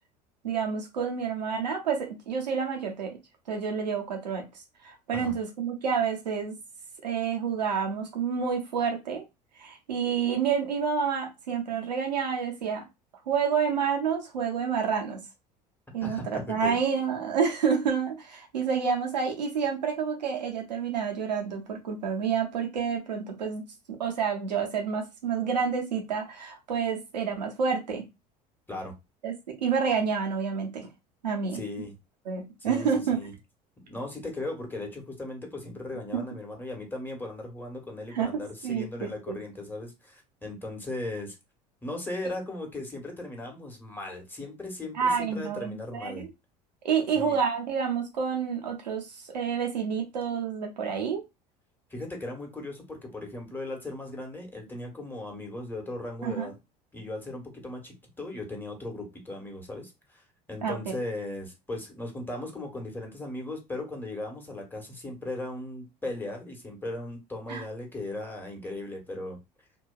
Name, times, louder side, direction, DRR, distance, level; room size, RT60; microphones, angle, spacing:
voice 1, 0.4-3.2 3.5-4.4 4.8-6.5 7.0-9.2 9.6-12.8 13.3-15.2 15.9-28.0 29.2-29.4 29.6-30.9 31.2-31.6 32.3-33.2 36.1-36.2 38.1-39.4 44.9-46.3 46.8-51.2 56.2-56.5 60.6-61.0 67.5-67.6, right 6 dB, 90° right, 0.7 m, -29 dB
voice 2, 16.0-16.8 28.7-28.9 31.5-31.9 32.6-33.3 33.8-41.3 41.8-46.2 47.1-47.4 51.9-56.5 56.9-60.2 60.5-69.4, left 2 dB, 10° left, 1.2 m, -37 dB
2.8 x 2.3 x 2.3 m
hypercardioid pair, 75°, 21 cm